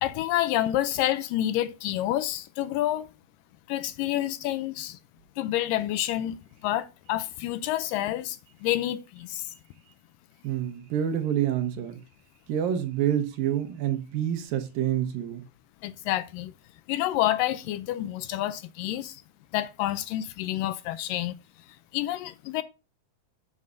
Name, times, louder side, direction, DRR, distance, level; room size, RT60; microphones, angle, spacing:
voice 1, 0.0-3.1 3.7-5.0 5.4-6.4 6.6-8.4 8.6-9.5 15.8-16.5 16.9-19.2 19.5-21.4 21.9-22.6, left 13 dB, 80° left, 2.1 m, -28 dB
voice 2, 10.4-12.0 12.5-15.5, right 10 dB, 75° right, 2.8 m, -27 dB
11.0 x 7.5 x 2.6 m
omnidirectional pair, 4.2 m